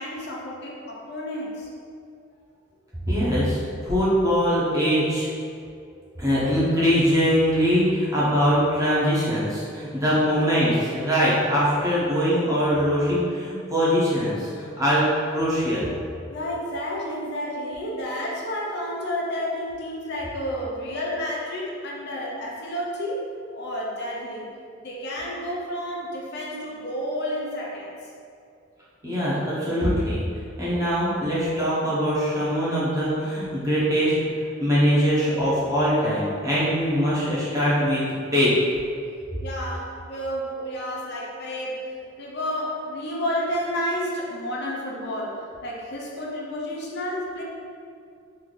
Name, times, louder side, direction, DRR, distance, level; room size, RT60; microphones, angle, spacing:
voice 1, 0.0-1.7 5.5-5.6 16.3-24.5 24.8-27.9 39.4-47.4, equal, 55° left, -3 dB, 0.6 m, -31 dB
voice 2, 3.1-5.3 6.2-14.5 14.8-15.9 29.0-30.2 30.6-38.0 38.3-38.5, equal, 15° right, -9 dB, 0.9 m, -22 dB
3.3 x 2.7 x 3.9 m, 2.4 s
head